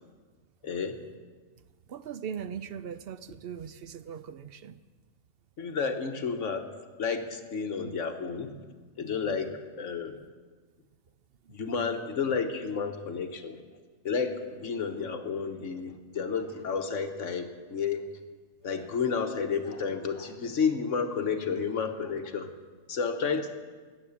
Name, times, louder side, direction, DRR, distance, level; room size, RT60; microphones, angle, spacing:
voice 1, 0.6-1.0 5.6-6.7 7.0-8.5 9.0-10.2 11.5-13.6 14.0-18.0 18.6-22.5 22.9-23.5, left 5 dB, 70° left, 6 dB, 1.5 m, -31 dB
voice 2, 1.9-4.8 11.4-11.5, right 8 dB, 60° right, 13 dB, 0.7 m, -39 dB
19.5 x 9.3 x 7.2 m, 1.5 s
omnidirectional pair, 1.3 m